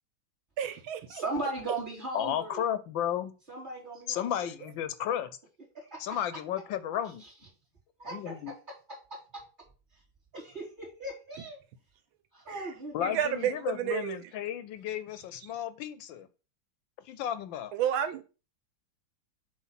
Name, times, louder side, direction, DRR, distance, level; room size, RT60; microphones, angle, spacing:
voice 1, 0.6-1.2 12.5-12.7 13.0-14.2 17.7-18.2, right 9 dB, 90° right, 1.6 m, -31 dB
voice 2, 1.1-2.6 3.5-4.3 5.9-6.0 8.0-8.2 10.3-11.6 12.3-13.2, right 2 dB, 25° right, 3.1 m, -37 dB
voice 3, 2.1-3.4 4.1-5.3 6.0-7.2 8.0-8.5 12.9-16.3 17.0-17.7, left 10 dB, 75° left, 1.3 m, -33 dB
7.4 x 3.2 x 5.7 m
omnidirectional pair, 2.2 m